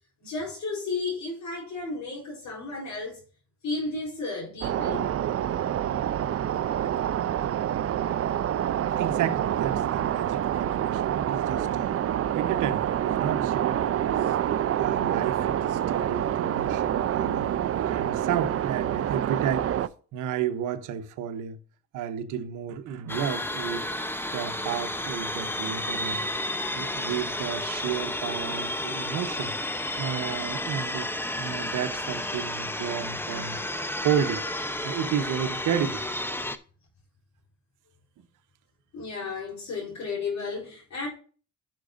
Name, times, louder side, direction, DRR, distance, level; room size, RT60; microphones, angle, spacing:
voice 1, 0.2-3.2 3.6-5.1 38.9-41.1, left 3 dB, 65° left, 3.8 m, -33 dB
sound 1, 4.6-19.9, right 11 dB, 50° right, 0.6 m, -27 dB
voice 2, 9.0-11.9 12.3-14.3 14.8-17.5 17.9-19.7 20.1-21.6 21.9-23.8 24.3-26.3 26.7-29.5 30.0-31.1 31.4-33.6 34.0-34.4 34.8-36.0, right 9 dB, 90° right, 0.9 m, -32 dB
sound 2, 23.1-36.6, left 1 dB, 5° left, 0.7 m, -32 dB
11.5 x 6.2 x 2.5 m
cardioid pair, 90°, 30 cm